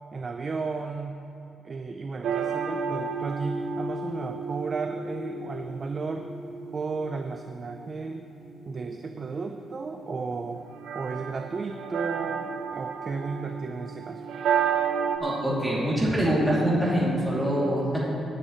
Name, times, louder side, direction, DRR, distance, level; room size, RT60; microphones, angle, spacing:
voice 1, 0.1-1.2 1.6-6.3 6.7-8.2 8.6-10.6 10.9-14.2, right 4 dB, 35° right, 5 dB, 0.5 m, -34 dB
sound 1, 2.2-15.2, right 6 dB, 80° right, 0.8 m, -32 dB
voice 2, 15.2-18.0, right 1 dB, 5° right, -7 dB, 2.7 m, -24 dB
17.5 x 9.9 x 3.1 m, 2.7 s
cardioid pair, 110°, 0 cm